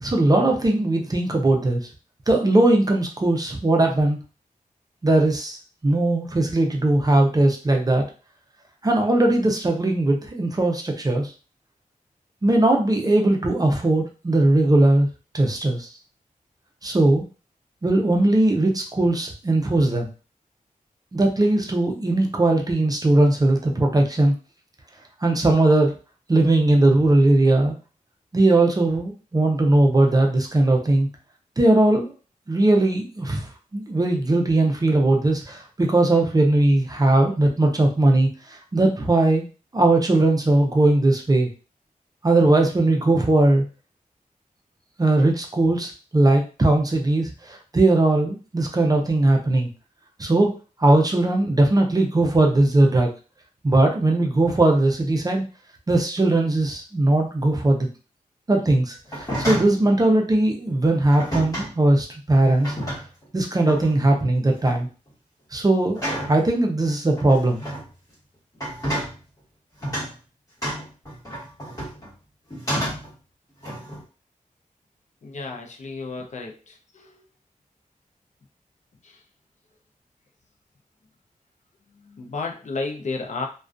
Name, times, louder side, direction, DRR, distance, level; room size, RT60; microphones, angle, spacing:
voice 1, 0.0-1.9 2.3-4.2 5.0-5.6 5.8-8.0 8.8-11.3 12.4-15.1 15.3-15.9 16.8-17.2 17.8-20.1 21.1-24.3 25.2-25.9 26.3-27.7 28.3-31.1 31.6-32.1 32.5-33.5 33.7-39.4 39.7-41.5 42.2-43.6 45.0-49.7 50.2-50.5 50.8-53.1 53.6-55.4 55.9-57.9 58.5-62.7 63.3-64.9 65.5-66.0 66.3-67.6, right 2 dB, 25° right, 1 dB, 0.5 m, -19 dB
sound 1, 59.0-59.8 61.1-61.7 62.4-63.2 63.7-64.0 64.4-64.8 65.9-66.4 67.2-67.8 68.5-69.2 69.8-70.1 70.6-72.1 72.5-73.1 73.6-74.0, equal, 25° left, 1.3 m, -30 dB
voice 2, 75.2-77.1 79.0-79.2 82.2-83.5, left 3 dB, 60° left, 2 dB, 0.5 m, -32 dB
2.4 x 2.2 x 2.4 m, 0.35 s
wide cardioid pair, 130°, 14 cm